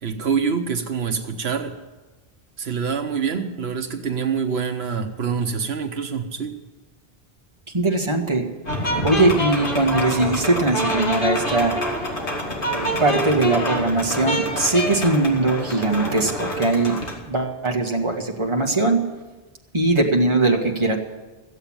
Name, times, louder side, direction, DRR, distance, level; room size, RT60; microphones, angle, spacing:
voice 1, 0.0-1.7 2.6-6.5 12.6-12.8, right 6 dB, 85° right, 5 dB, 1.2 m, -25 dB
voice 2, 7.7-8.4 9.0-11.8 12.7-17.0 17.3-19.0 19.7-21.0, right 2 dB, 30° right, 1 dB, 1.7 m, -20 dB
sound 1, 8.7-17.2, equal, 55° left, 2.4 m, -26 dB
15.0 x 8.0 x 8.8 m, 1.2 s
omnidirectional pair, 1.0 m